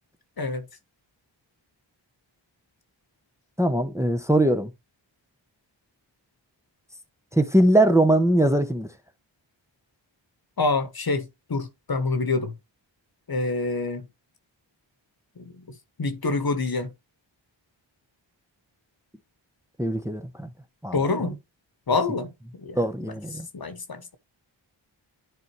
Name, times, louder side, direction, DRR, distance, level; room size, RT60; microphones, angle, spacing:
voice 1, 0.4-0.7 10.6-12.6 13.3-14.1 15.4-16.9 20.9-21.4 21.9-24.2, left 3 dB, 50° left, 1.2 m, -27 dB
voice 2, 3.6-4.7 7.3-8.9 19.8-20.5 20.8-21.0 22.8-23.5, right 1 dB, 5° right, 0.9 m, -21 dB
10.5 x 4.1 x 3.2 m
wide cardioid pair, 55°, 46 cm